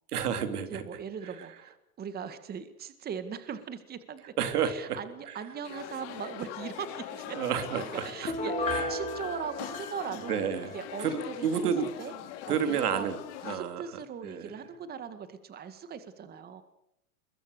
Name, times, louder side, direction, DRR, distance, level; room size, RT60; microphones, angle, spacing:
voice 1, 0.1-0.8 4.4-5.0 7.3-8.3 8.7-8.9 10.3-10.7 11.0-11.9 12.5-13.2 13.4-13.8 14.2-14.5, right 7 dB, 85° right, 9 dB, 3.4 m, -30 dB
voice 2, 0.7-4.2 4.6-7.4 7.7-10.4 10.7-12.1 12.4-13.1 13.4-16.6, right 7 dB, 20° right, 11 dB, 2.0 m, -40 dB
sound 1, 5.6-13.6, left 10 dB, 50° left, 3.7 m, -42 dB
Piano, 8.3-11.0 11.3-11.4, left 2 dB, 15° left, 4.1 m, -34 dB
25.0 x 22.0 x 6.8 m, 0.77 s
supercardioid pair, 140°, 44 cm